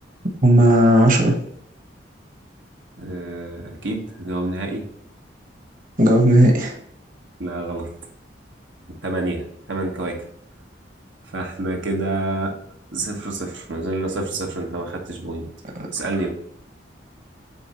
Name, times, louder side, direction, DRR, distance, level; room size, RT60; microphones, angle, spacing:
voice 1, 0.4-1.3 6.0-6.7, right 1 dB, 45° right, 1 dB, 1.2 m, -14 dB
voice 2, 3.0-4.9 7.4-7.9 9.0-10.2 11.3-12.6 12.9-15.5 15.9-16.3, right 2 dB, 90° right, 1 dB, 1.4 m, -28 dB
8.7 x 3.6 x 3.0 m, 0.69 s
head